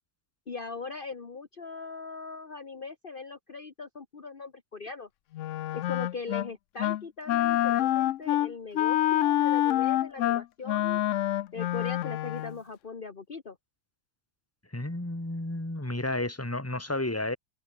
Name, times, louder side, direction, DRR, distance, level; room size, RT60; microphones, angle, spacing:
voice 1, 0.5-5.1 5.7-11.0 11.5-13.6, left 4 dB, 40° left, 1.6 m, -40 dB
Wind instrument woodwind instrument, 5.3-6.5 6.8-7.0 7.3-12.6, left 13 dB, 65° left, 0.9 m, -26 dB
voice 2, 14.7-17.4, left 1 dB, 10° left, 2.4 m, -32 dB
omnidirectional pair, 1.5 m